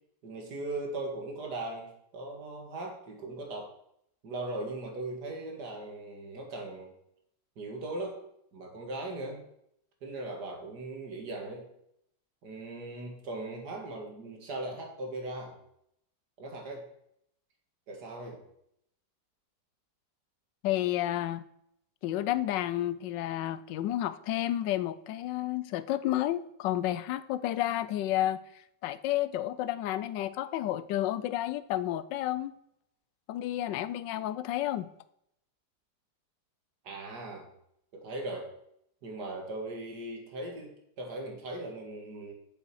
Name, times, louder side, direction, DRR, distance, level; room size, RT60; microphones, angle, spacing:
voice 1, 0.2-3.7 4.2-7.0 7.6-8.2 8.5-9.5 10.0-11.7 12.4-15.6 16.4-16.9 17.9-18.4 36.8-37.5 37.9-38.5 39.0-42.3, right 2 dB, 70° right, 2 dB, 2.3 m, -39 dB
voice 2, 20.6-21.4 22.0-28.4 28.8-32.5 33.3-34.9, left 13 dB, 90° left, 15 dB, 1.3 m, -31 dB
9.0 x 6.8 x 4.7 m, 0.75 s
omnidirectional pair, 1.9 m